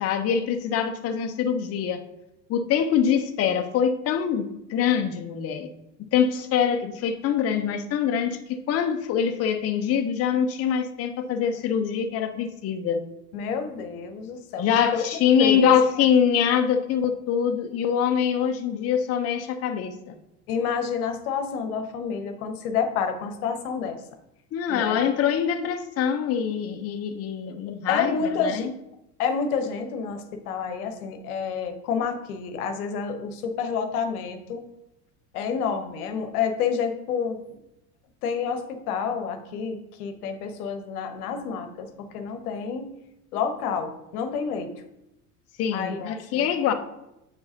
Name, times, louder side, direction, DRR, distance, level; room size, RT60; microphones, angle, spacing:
voice 1, 0.0-2.0 2.5-4.4 4.7-5.7 6.1-13.0 14.6-20.2 24.5-28.7 45.6-46.7, left 8 dB, 30° left, 7 dB, 0.7 m, -24 dB
voice 2, 13.3-14.7 14.9-15.7 20.5-24.0 24.7-25.0 27.9-28.7 29.2-34.6 35.3-37.4 38.2-41.9 42.1-42.9 43.3-44.7 45.7-46.5, left 6 dB, 65° left, 7 dB, 1.0 m, -29 dB
8.6 x 4.7 x 2.7 m, 0.88 s
figure-of-eight pair, 75°, 48 cm